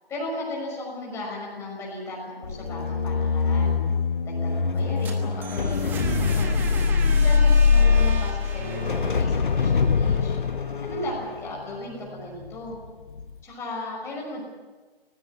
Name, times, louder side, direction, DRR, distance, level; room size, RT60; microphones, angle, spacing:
voice 1, 0.1-3.7 4.2-6.5 7.0-10.3 10.8-12.8 13.4-14.4, left 1 dB, 10° left, -4 dB, 6.3 m, -36 dB
sound 1, 2.4-12.7 13.1-13.4, left 5 dB, 55° left, 1.4 m, -23 dB
sound 2, 4.8-10.7, right 6 dB, 5° right, 1.2 m, -37 dB
23.5 x 19.5 x 7.4 m, 1.3 s
figure-of-eight pair, 145°, 30 cm